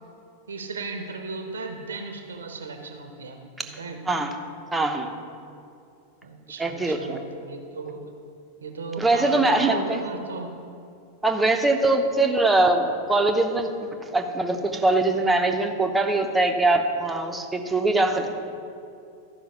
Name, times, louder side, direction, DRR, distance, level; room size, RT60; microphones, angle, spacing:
voice 1, 0.5-4.0 6.2-8.0 8.6-10.5, right 3 dB, 70° right, 5 dB, 1.1 m, -36 dB
voice 2, 4.7-5.1 6.6-7.2 9.0-10.0 11.2-18.3, right 2 dB, 10° right, 5 dB, 0.9 m, -22 dB
13.0 x 5.6 x 5.7 m, 2.5 s
figure-of-eight pair, 90°, 0 cm